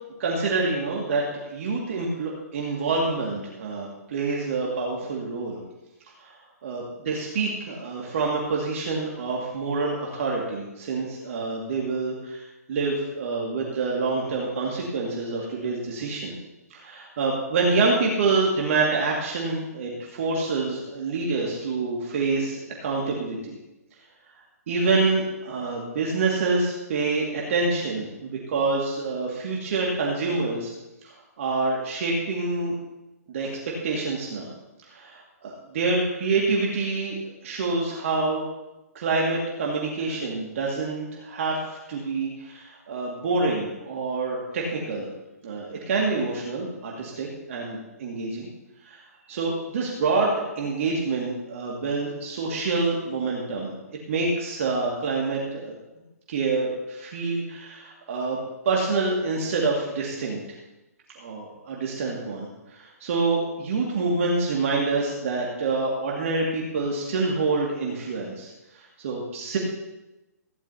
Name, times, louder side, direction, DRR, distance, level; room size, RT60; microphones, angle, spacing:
voice 1, 0.2-5.6 6.2-6.3 6.6-16.3 16.7-23.6 24.7-30.7 31.0-32.7 33.3-33.5 33.8-34.5 34.9-37.2 37.4-38.4 38.9-41.6 41.9-45.1 45.4-48.5 48.8-49.0 49.3-53.7 54.1-55.7 56.3-58.4 58.7-60.4 61.2-69.6, right 3 dB, 55° right, -3 dB, 2.1 m, -27 dB
15.5 x 10.5 x 2.8 m, 1.0 s
hypercardioid pair, 140°, 9 cm